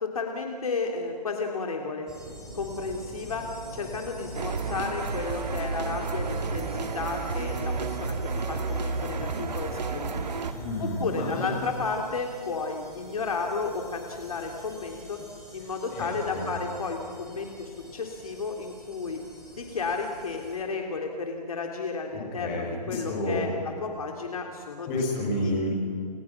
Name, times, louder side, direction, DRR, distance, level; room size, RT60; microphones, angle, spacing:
voice 1, 0.0-3.4 3.7-8.2 8.5-10.2 10.8-15.2 15.5-19.2 19.5-24.9 25.4-25.5, left 4 dB, 55° left, 2 dB, 3.5 m, -33 dB
sound 1, 2.1-20.6, equal, 5° right, 4.4 m, -45 dB
sound 2, 4.3-10.5, right 4 dB, 75° right, 2.6 m, -31 dB
voice 2, 10.6-11.5 15.9-16.5 22.1-23.5 24.9-25.7, left 1 dB, 15° left, -3 dB, 7.4 m, -30 dB
30.0 x 29.5 x 6.1 m, 2.2 s
hypercardioid pair, 175°, 21 cm